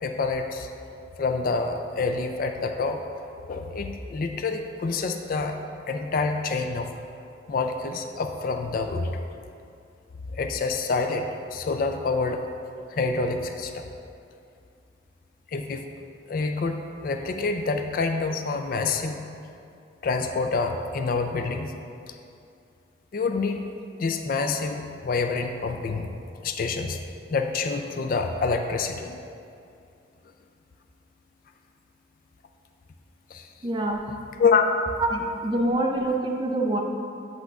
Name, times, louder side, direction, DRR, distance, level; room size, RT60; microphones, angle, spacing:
voice 1, 0.0-0.7 1.2-3.0 3.5-5.6 5.9-6.9 7.5-9.1 10.3-12.4 12.9-13.8 15.5-15.8 16.3-19.2 20.0-21.7 22.1-22.2 23.1-23.6 24.0-26.1 26.4-27.0 27.3-29.2 33.3-33.5 34.4-34.7, left 4 dB, 45° left, 6 dB, 0.3 m, -27 dB
voice 2, 33.6-34.1 35.0-36.8, right 2 dB, 25° right, 1 dB, 0.5 m, -25 dB
8.1 x 6.5 x 2.4 m, 2.5 s
head